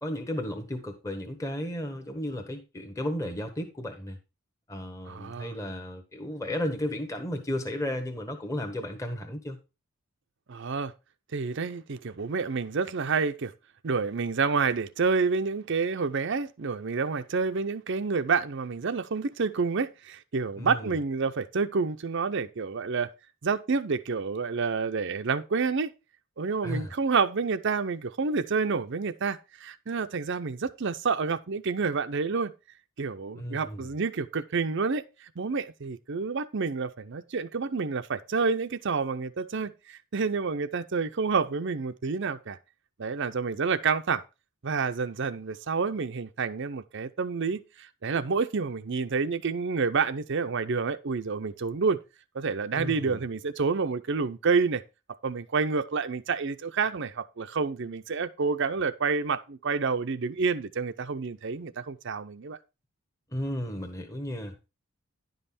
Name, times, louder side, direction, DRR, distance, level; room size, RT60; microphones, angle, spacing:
voice 1, 0.0-4.2 4.7-9.6 20.6-21.0 26.6-26.9 33.4-33.9 52.7-53.2 63.3-64.7, left 1 dB, 15° left, 1.1 m, -34 dB
voice 2, 5.1-5.5 10.5-10.9 11.3-13.5 13.8-23.1 23.4-25.9 26.4-32.5 33.0-42.6 43.0-44.2 44.6-52.0 52.3-54.8 55.2-62.6, right 5 dB, 60° right, 0.6 m, -29 dB
10.5 x 5.5 x 4.2 m
head